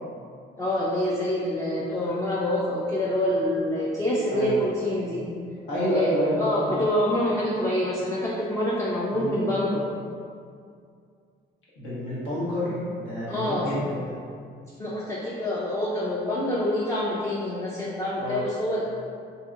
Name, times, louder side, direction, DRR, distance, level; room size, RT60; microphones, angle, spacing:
voice 1, 0.6-5.3 5.9-9.9 13.3-13.7 14.8-18.8, left 1 dB, 15° left, -5 dB, 0.4 m, -26 dB
voice 2, 5.6-6.8 9.1-9.3 11.8-14.1 18.2-18.4, equal, 80° left, -9 dB, 1.1 m, -28 dB
2.7 x 2.7 x 2.4 m, 2.3 s
cardioid pair, 90°, 20 cm